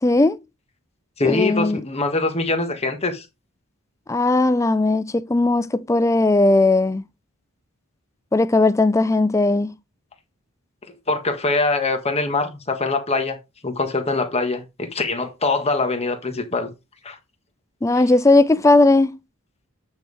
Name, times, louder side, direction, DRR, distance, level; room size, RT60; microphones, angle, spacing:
voice 1, 0.0-0.4 1.2-1.8 4.1-7.0 8.3-9.8 17.8-19.2, left 2 dB, 15° left, 0.4 m, -17 dB
voice 2, 1.2-3.2 11.1-13.4 13.6-16.7 17.0-17.2, left 3 dB, 30° left, 1.4 m, -23 dB
8.8 x 5.3 x 3.3 m
head